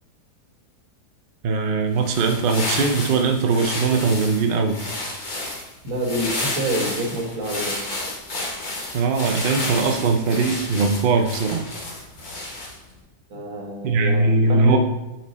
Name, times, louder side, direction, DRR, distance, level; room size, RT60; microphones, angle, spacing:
voice 1, 1.4-4.8 8.9-11.6 13.8-14.8, right 4 dB, 70° right, 4 dB, 0.5 m, -20 dB
sound 1, 1.9-12.9, left 2 dB, 35° left, 1.0 m, -31 dB
voice 2, 5.8-7.8 13.3-14.8, right 1 dB, 55° right, 0 dB, 1.8 m, -27 dB
7.7 x 4.5 x 4.2 m, 1.0 s
omnidirectional pair, 1.8 m